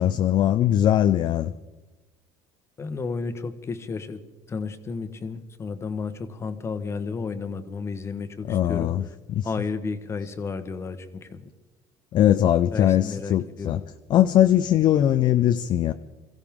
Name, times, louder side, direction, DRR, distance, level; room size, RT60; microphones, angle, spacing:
voice 1, 0.0-1.5 8.5-9.0 9.3-9.5 12.1-13.8 14.1-15.9, left 11 dB, 45° left, 0.5 m, -20 dB
voice 2, 2.8-4.2 4.5-8.9 9.4-11.5 12.7-13.9, left 4 dB, 25° left, 1.1 m, -32 dB
23.5 x 15.5 x 3.6 m
cardioid pair, 120°, 10 cm